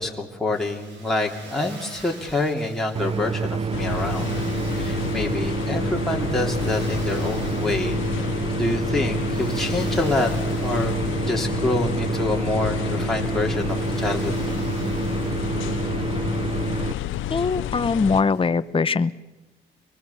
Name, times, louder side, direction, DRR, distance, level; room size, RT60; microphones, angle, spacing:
voice 1, 0.0-4.3 4.7-8.0 8.6-10.3 10.6-11.0 11.2-14.3, left 2 dB, ahead, -1 dB, 2.9 m, -26 dB
Motor vehicle (road), 0.5-18.5, right 2 dB, 65° right, 6.1 m, -46 dB
sound 1, 2.9-16.9, right 4 dB, 30° right, 0.7 m, -27 dB
sound 2, 3.7-18.2, left 12 dB, 80° left, 0.7 m, -30 dB
voice 2, 17.3-19.1, left 4 dB, 25° left, 12 dB, 0.8 m, -22 dB
25.0 x 20.0 x 7.0 m, 1.1 s
cardioid pair, 90°, 20 cm